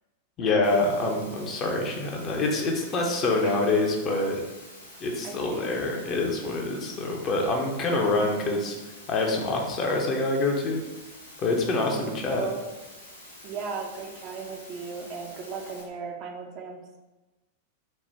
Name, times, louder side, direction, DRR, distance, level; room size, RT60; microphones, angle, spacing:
voice 1, 0.4-4.4 5.0-8.8 9.1-10.8 11.4-12.4, left 2 dB, 30° left, 1 dB, 0.6 m, -26 dB
Water, 0.6-15.8, left 1 dB, 80° left, 1.0 m, -48 dB
voice 2, 5.2-5.7 8.2-8.5 12.2-12.7 13.4-16.8, right 5 dB, 40° right, 2 dB, 0.5 m, -37 dB
4.2 x 2.1 x 3.3 m, 1.1 s
figure-of-eight pair, 90°, 0 cm